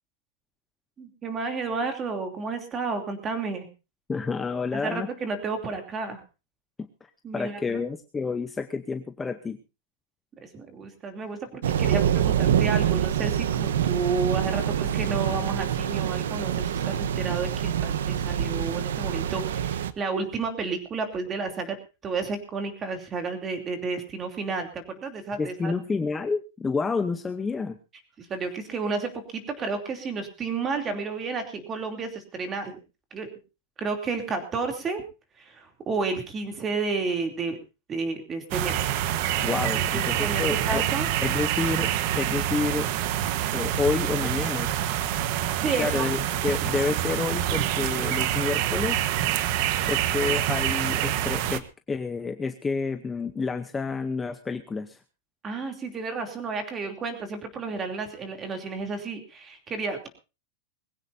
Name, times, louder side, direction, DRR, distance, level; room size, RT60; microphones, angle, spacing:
voice 1, 1.0-3.7 4.7-6.2 7.2-7.8 10.4-21.8 22.0-25.7 28.2-32.8 33.1-33.4 33.8-35.0 35.4-37.6 37.9-38.8 39.5-41.1 45.6-46.1 55.4-60.1, right 4 dB, 20° right, 6 dB, 2.9 m, -31 dB
voice 2, 4.1-5.1 6.8-9.6 25.4-27.8 39.4-40.8 41.2-42.9 43.5-44.7 45.8-49.1 49.9-55.0, left 4 dB, 10° left, 9 dB, 0.7 m, -29 dB
sound 1, 11.6-19.9, right 9 dB, 90° right, 1.1 m, -26 dB
sound 2, 38.5-51.6, right 11 dB, 45° right, 1.2 m, -26 dB
21.5 x 16.0 x 2.7 m, 0.30 s
supercardioid pair, 165°, 0 cm